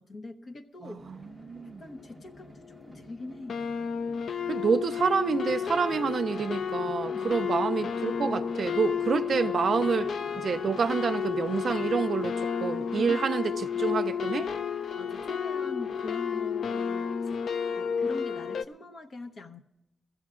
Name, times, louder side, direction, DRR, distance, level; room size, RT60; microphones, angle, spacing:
voice 1, 0.0-1.0 1.8-3.6 7.1-7.7 13.0-13.3 15.0-17.4 17.7-19.6, left 2 dB, 45° left, 0.9 m, -42 dB
voice 2, 0.8-1.8 4.5-10.1 10.4-13.5 13.8-14.5, right 5 dB, 55° right, 0.4 m, -28 dB
sound 1, 1.0-12.1, left 1 dB, 15° left, 1.4 m, -52 dB
sound 2, 2.3-2.4 2.6-3.0 3.5-18.6, left 7 dB, 65° left, 0.4 m, -31 dB
21.5 x 15.0 x 2.5 m
wide cardioid pair, 135°, 0 cm